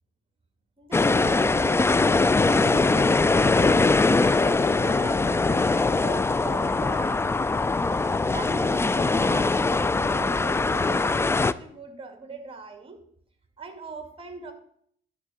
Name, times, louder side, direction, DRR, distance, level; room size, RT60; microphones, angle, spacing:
voice 1, 0.8-2.1 2.4-7.4 7.8-13.0 13.6-14.5, right 4 dB, 25° right, 7 dB, 1.9 m, -41 dB
sound 1, 0.9-11.5, left 3 dB, 15° left, 0.3 m, -22 dB
11.0 x 3.7 x 7.4 m, 0.65 s
cardioid pair, 90°, 20 cm